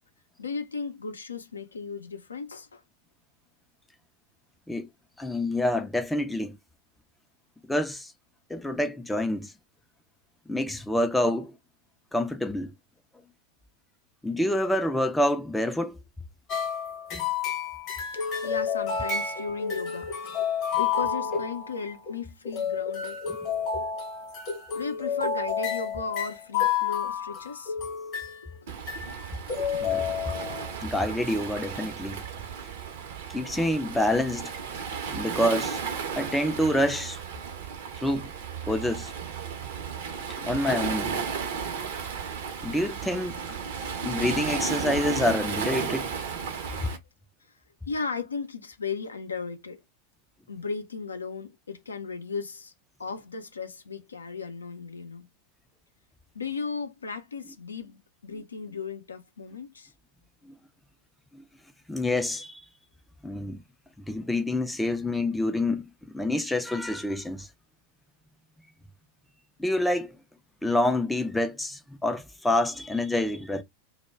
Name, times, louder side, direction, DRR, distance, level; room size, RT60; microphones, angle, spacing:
voice 1, 0.4-2.8 18.1-20.4 20.8-23.2 24.7-27.7 30.2-30.5 31.4-31.5 37.6-37.8 47.9-49.8 50.5-52.7 53.0-55.3 56.3-59.9, left 5 dB, 75° left, 0.4 m, -36 dB
voice 2, 5.2-6.6 7.7-8.1 8.5-9.5 10.5-11.5 12.1-12.7 14.2-16.0 29.8-30.0 30.8-32.2 33.3-34.5 35.1-35.8 36.2-37.2 38.0-38.3 38.6-39.1 40.4-41.2 42.6-43.4 44.0-46.1 60.5-60.6 61.3-61.4 61.9-62.6 63.2-63.6 64.1-67.5 69.6-70.2 70.6-73.6, left 1 dB, 5° left, 0.3 m, -27 dB
sound 1, 16.5-22.2 22.4-28.5 28.9-29.2 29.5-30.7, left 7 dB, 35° left, 0.8 m, -30 dB
Waves surf, 28.7-47.0, right 6 dB, 55° right, 0.6 m, -34 dB
2.2 x 2.0 x 3.3 m
figure-of-eight pair, 90°, 0 cm